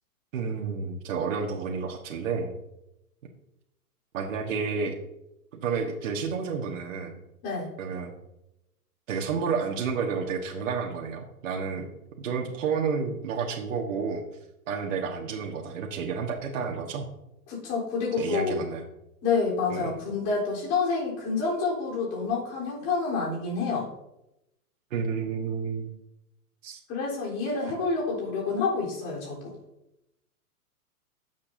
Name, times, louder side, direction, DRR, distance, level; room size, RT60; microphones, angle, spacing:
voice 1, 0.3-2.6 4.1-5.0 5.6-7.2 7.8-8.1 9.1-11.9 12.2-14.2 14.7-17.1 18.2-18.8 19.7-20.0 24.9-25.9 26.6-26.8, right 5 dB, 55° right, 1 dB, 1.6 m, -30 dB
voice 2, 17.5-18.6 19.2-23.9 26.9-29.5, left 4 dB, 35° left, -4 dB, 3.8 m, -28 dB
18.0 x 7.4 x 2.7 m, 0.88 s
figure-of-eight pair, 110°, 45 cm